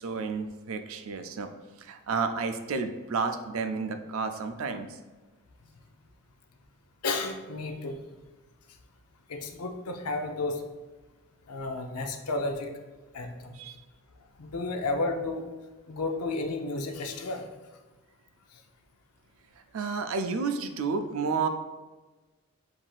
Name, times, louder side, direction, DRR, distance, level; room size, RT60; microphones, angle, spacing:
voice 1, 0.0-1.5 1.8-5.0 13.5-13.8 19.7-21.5, right 4 dB, 65° right, 7 dB, 0.4 m, -31 dB
voice 2, 7.0-8.0 9.3-10.6 11.5-12.7 13.1-13.5 14.4-15.4 15.9-17.5, left 2 dB, 90° left, 5 dB, 0.5 m, -32 dB
7.3 x 2.6 x 2.3 m, 1.2 s
head